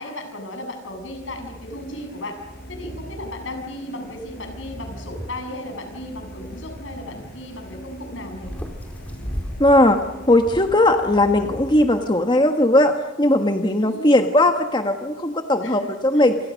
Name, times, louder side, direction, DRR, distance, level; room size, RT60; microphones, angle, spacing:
voice 1, 0.0-2.4 2.7-8.5 13.8-14.2 15.6-15.9, left 1 dB, 70° left, 5 dB, 7.5 m, -35 dB
sound 1, 0.8-12.5, equal, 50° left, 6.9 m, -40 dB
sound 2, 4.2-5.4 5.7-8.0 8.4-10.7, equal, 5° left, 4.1 m, -36 dB
voice 2, 9.6-10.0 10.3-16.4, left 1 dB, 25° left, 5 dB, 1.4 m, -18 dB
28.5 x 27.5 x 6.5 m, 0.99 s
head